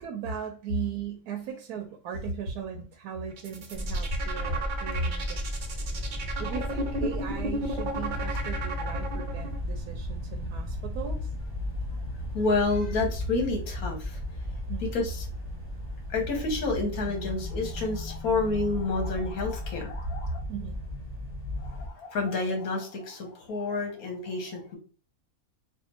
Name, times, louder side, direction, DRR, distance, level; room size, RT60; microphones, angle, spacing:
voice 1, 0.0-5.4 6.4-11.3 14.7-14.9 20.5-20.8, right 9 dB, 85° right, 4 dB, 1.1 m, -38 dB
sound 1, 3.3-9.6, right 2 dB, 50° right, 0.5 m, -34 dB
sound 2, 3.7-21.9, left 1 dB, 10° right, 0.8 m, -34 dB
voice 2, 12.3-14.2 14.9-15.2 16.1-20.4 21.6-24.8, left 3 dB, 70° left, 3 dB, 1.5 m, -29 dB
3.5 x 2.5 x 4.2 m, 0.36 s
omnidirectional pair, 1.6 m